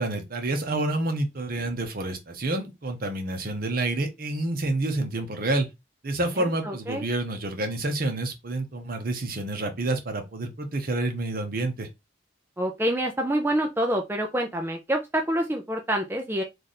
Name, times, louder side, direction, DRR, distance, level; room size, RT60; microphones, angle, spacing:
voice 1, 0.0-5.7 6.0-11.9, right 2 dB, 50° right, 0.9 m, -28 dB
voice 2, 6.4-7.0 12.6-16.4, right 1 dB, 10° right, 0.4 m, -27 dB
3.3 x 2.5 x 4.1 m
head